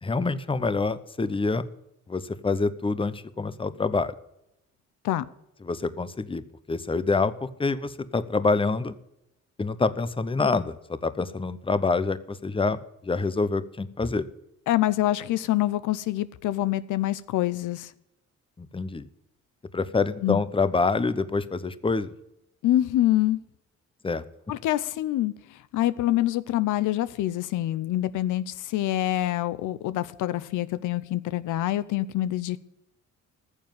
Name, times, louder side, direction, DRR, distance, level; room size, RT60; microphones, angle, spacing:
voice 1, 0.0-1.6 2.1-4.1 5.6-6.4 6.7-8.9 9.6-14.2 18.6-19.1 19.7-22.1 24.0-24.2, left 3 dB, 15° left, 14 dB, 0.9 m, -26 dB
voice 2, 14.7-17.9 20.2-20.4 22.6-23.4 24.5-32.6, left 14 dB, 85° left, 15 dB, 0.7 m, -26 dB
14.5 x 7.2 x 9.3 m, 0.85 s
cardioid pair, 90°, 30 cm